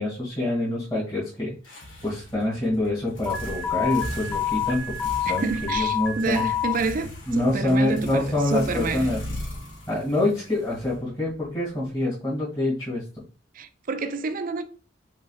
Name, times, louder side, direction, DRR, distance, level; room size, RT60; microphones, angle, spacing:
voice 1, 0.0-6.5 7.3-9.2 9.9-13.0, left 1 dB, 25° left, 2.1 m, -26 dB
sound 1, 1.6-11.4, left 1 dB, 85° left, 1.6 m, -38 dB
Alarm, 3.3-6.7, left 8 dB, 10° left, 0.7 m, -28 dB
voice 2, 5.3-9.1 13.5-14.6, right 4 dB, 45° right, 0.4 m, -29 dB
5.5 x 3.7 x 2.4 m
head